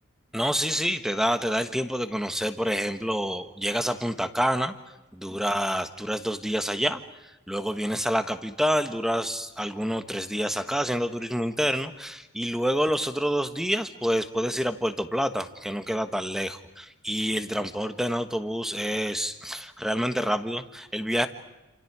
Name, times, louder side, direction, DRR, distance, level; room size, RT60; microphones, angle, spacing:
voice 1, 0.3-4.7 5.1-21.3, equal, ahead, 9 dB, 1.4 m, -28 dB
29.0 x 27.5 x 4.9 m, 1.0 s
head